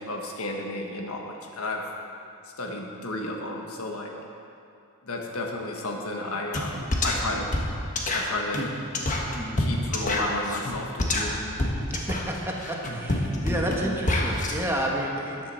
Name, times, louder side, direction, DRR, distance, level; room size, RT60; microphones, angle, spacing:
voice 1, 0.0-1.8 2.6-4.1 5.0-7.5 8.1-8.8 9.6-11.4, left 2 dB, 70° left, 1 dB, 1.4 m, -32 dB
sound 1, 6.5-6.7 6.9-14.5, left 1 dB, 35° left, 1.2 m, -27 dB
voice 2, 11.9-15.5, right 1 dB, 10° right, -1 dB, 1.2 m, -30 dB
13.5 x 10.0 x 4.3 m, 2.6 s
head